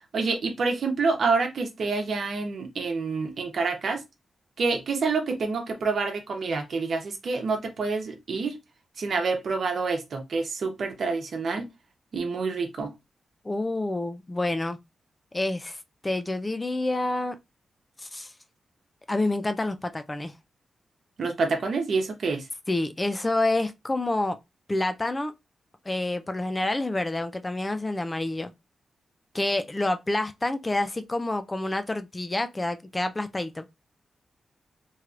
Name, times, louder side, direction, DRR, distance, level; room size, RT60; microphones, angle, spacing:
voice 1, 0.1-4.0 4.6-8.5 9.0-11.6 12.1-12.9 21.2-22.4, right 4 dB, 65° right, 0.9 m, -27 dB
voice 2, 13.4-14.8 15.3-17.4 18.0-18.3 19.1-20.3 22.7-24.4 24.7-25.3 25.9-28.5 29.3-33.7, left 2 dB, 25° left, 0.4 m, -28 dB
3.1 x 3.0 x 2.4 m
cardioid pair, 70°, 0 cm